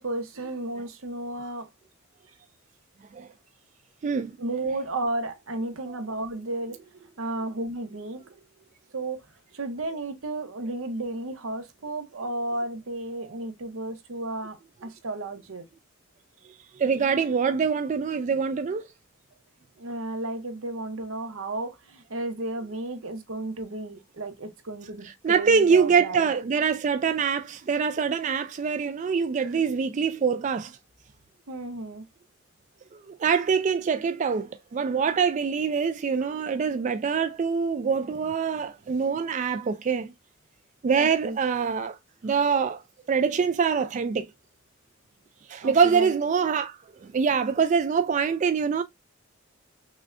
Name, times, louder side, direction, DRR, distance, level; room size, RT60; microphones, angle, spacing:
voice 1, 0.0-1.7 4.4-8.4 8.9-9.2 9.5-15.6 19.8-26.3 29.4-29.5 31.5-32.0 41.0-41.4 45.6-46.1, right 2 dB, 85° right, 0.9 m, -33 dB
voice 2, 16.8-18.8 25.0-30.8 32.9-40.1 40.8-42.0 42.2-42.8 43.1-44.3 45.5-48.8, right 6 dB, 35° right, 0.3 m, -24 dB
6.0 x 2.2 x 2.5 m
head